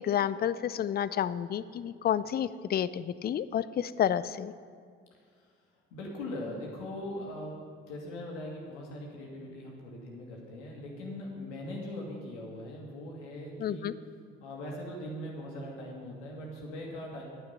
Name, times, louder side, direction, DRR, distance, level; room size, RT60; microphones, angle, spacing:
voice 1, 0.0-4.5 13.6-13.9, left 9 dB, 30° left, 16 dB, 0.4 m, -30 dB
voice 2, 5.9-7.6 7.9-14.0 14.4-17.2, left 1 dB, 80° left, -1 dB, 2.1 m, -40 dB
10.0 x 9.5 x 5.7 m, 2.1 s
figure-of-eight pair, 45°, 35 cm